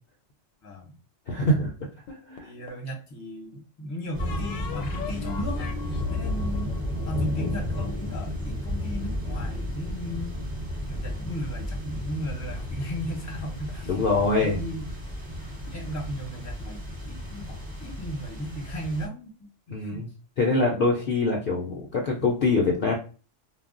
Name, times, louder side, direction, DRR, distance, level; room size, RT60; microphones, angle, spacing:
voice 1, 1.3-1.7 2.1-2.5 13.8-14.6 19.7-20.1 20.4-22.9, left 2 dB, 60° left, 0 dB, 0.6 m, -24 dB
sound 1, 2.1-2.9 4.2-7.8, left 7 dB, 80° left, 1.0 m, -38 dB
voice 2, 2.4-5.7 6.1-6.7 7.0-10.4 10.9-14.9 15.7-19.5 19.8-20.1, equal, 15° left, 0 dB, 0.6 m, -36 dB
sound 2, 4.1-19.1, left 1 dB, 20° right, 0.8 m, -33 dB
2.3 x 2.1 x 3.6 m, 0.36 s
omnidirectional pair, 1.4 m